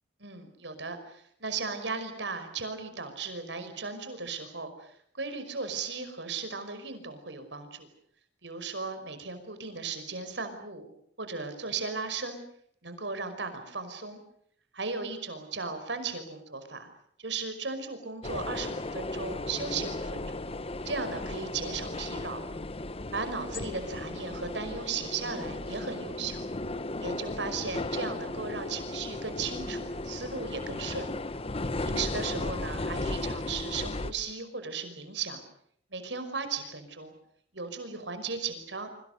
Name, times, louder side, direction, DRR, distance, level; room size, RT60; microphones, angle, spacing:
voice 1, 0.2-7.9 8.4-10.9 11.2-12.4 12.8-14.2 14.7-16.9 17.2-20.4 20.8-22.4 23.1-26.4 27.0-31.1 31.9-35.4 35.9-37.1 37.5-38.9, right 4 dB, 85° right, 9 dB, 5.5 m, -36 dB
sound 1, 18.2-34.1, left 2 dB, 35° left, 1.1 m, -35 dB
27.5 x 25.5 x 6.8 m, 0.66 s
head